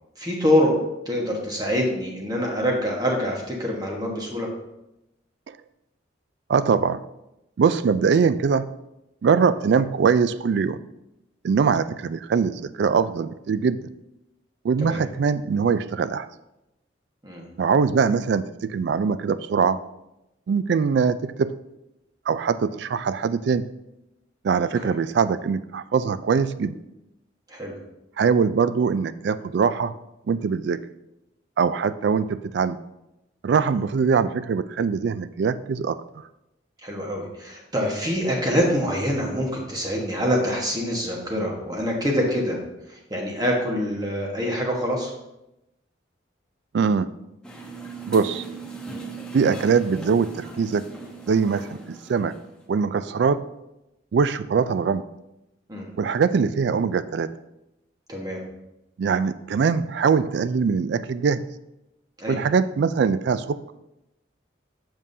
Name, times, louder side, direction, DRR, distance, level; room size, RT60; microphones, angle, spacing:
voice 1, 0.2-0.7 1.0-4.5 14.8-15.0 17.2-17.5 24.8-25.0 27.5-27.7 36.8-42.6 42.9-45.1 55.7-55.9 58.1-58.4 62.2-62.4, equal, 20° right, -1 dB, 1.3 m, -25 dB
voice 2, 6.5-7.0 7.6-8.7 9.2-10.8 11.4-13.8 14.6-16.3 17.6-19.8 20.5-21.5 22.3-23.7 24.4-26.8 28.2-29.9 30.3-30.8 31.6-32.8 33.4-36.0 46.7-47.1 48.1-48.4 49.3-50.8 51.3-52.3 52.7-53.4 54.1-55.0 56.0-57.3 59.0-61.4 62.3-63.7, right 5 dB, 60° right, 14 dB, 0.3 m, -22 dB
sound 1, 47.4-52.6, right 4 dB, 5° left, 0.9 m, -39 dB
7.3 x 7.0 x 2.7 m, 0.90 s
head